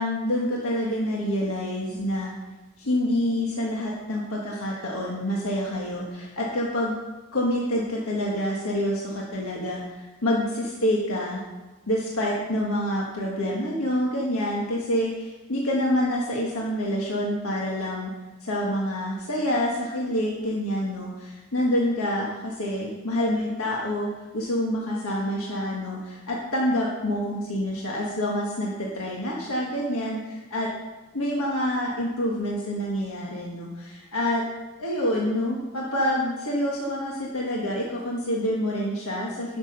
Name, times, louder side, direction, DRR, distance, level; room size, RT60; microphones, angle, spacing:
voice 1, 0.0-2.3 2.8-7.0 7.3-11.4 11.9-18.1 18.4-24.1 24.3-30.7 31.1-34.4 34.8-39.6, left 1 dB, 80° left, -3 dB, 1.5 m, -27 dB
11.0 x 6.1 x 6.6 m, 1.2 s
head